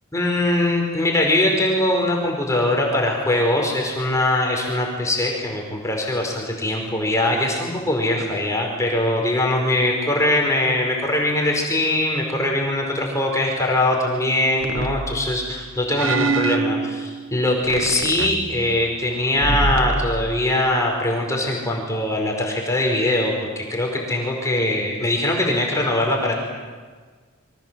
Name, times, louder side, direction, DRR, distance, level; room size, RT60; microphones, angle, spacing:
voice 1, 0.1-26.4, left 1 dB, 15° left, 0 dB, 4.9 m, -22 dB
sound 1, 14.6-15.5 15.9-17.3 17.6-19.0 19.3-20.5, right 3 dB, 60° right, 1.2 m, -26 dB
29.0 x 24.0 x 7.6 m, 1.5 s
head